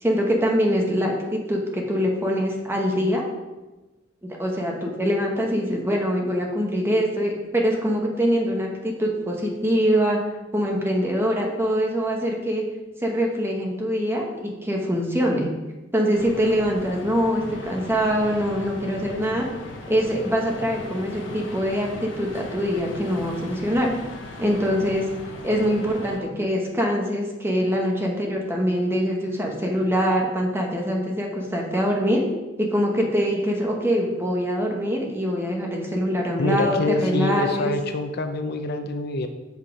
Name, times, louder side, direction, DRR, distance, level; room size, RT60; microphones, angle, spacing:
voice 1, 0.0-3.2 4.2-10.2 10.5-12.6 13.0-15.5 15.9-19.5 19.9-23.9 24.4-25.1 25.4-32.2 32.6-37.7, equal, 10° right, 0 dB, 1.2 m, -24 dB
sound 1, 16.1-26.2, left 1 dB, 75° left, 1.4 m, -38 dB
voice 2, 36.4-39.3, left 2 dB, 55° left, 7 dB, 0.5 m, -25 dB
7.2 x 5.8 x 4.8 m, 1.1 s
head